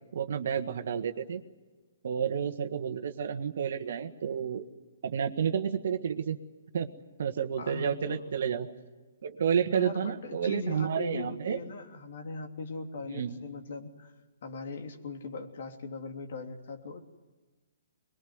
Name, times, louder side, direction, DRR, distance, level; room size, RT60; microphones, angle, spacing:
voice 1, 0.1-1.4 2.0-4.6 5.0-6.4 6.7-6.9 7.2-8.7 9.2-11.6 13.1-13.3, right 7 dB, 65° right, 8 dB, 1.6 m, -30 dB
voice 2, 7.6-8.2 9.7-14.1 14.4-17.0, left 4 dB, 60° left, 5 dB, 3.1 m, -40 dB
22.5 x 21.5 x 9.6 m, 1.3 s
hypercardioid pair, 135°, 0 cm